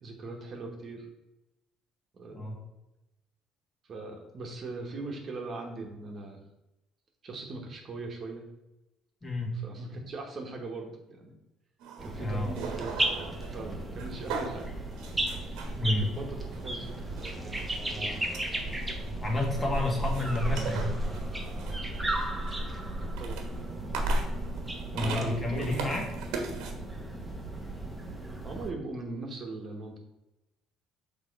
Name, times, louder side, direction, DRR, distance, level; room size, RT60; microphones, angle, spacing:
voice 1, 0.0-1.1 2.1-2.5 3.9-6.4 7.2-8.4 9.6-11.3 12.0-12.9 13.5-14.7 15.8-17.6 23.0-23.4 24.9-25.8 28.4-30.0, right 2 dB, 40° right, 1 dB, 1.2 m, -39 dB
voice 2, 9.2-9.5 12.2-12.6 15.8-16.1 19.2-21.0 24.9-26.0, left 2 dB, 25° left, 0 dB, 1.6 m, -30 dB
sound 1, 11.8-26.7, right 5 dB, 80° right, 1.2 m, -41 dB
sound 2, 12.0-28.7, right 1 dB, 10° right, 1.0 m, -34 dB
6.2 x 3.6 x 5.2 m, 0.96 s
cardioid pair, 115°, 0 cm